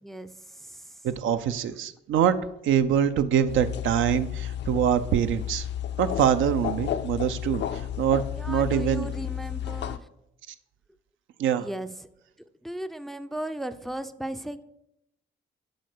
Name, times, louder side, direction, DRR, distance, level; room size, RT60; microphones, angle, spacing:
voice 1, 0.0-1.0 8.3-10.1 11.6-11.9 12.6-14.6, right 1 dB, ahead, 12 dB, 0.4 m, -36 dB
voice 2, 1.0-2.4 2.6-5.7 6.0-7.6 8.0-9.1 11.4-11.7, right 9 dB, 75° right, 11 dB, 0.6 m, -24 dB
sound 1, 3.5-10.0, left 10 dB, 65° left, 0.5 m, -32 dB
7.9 x 4.2 x 6.6 m, 0.82 s
cardioid pair, 90°, 20 cm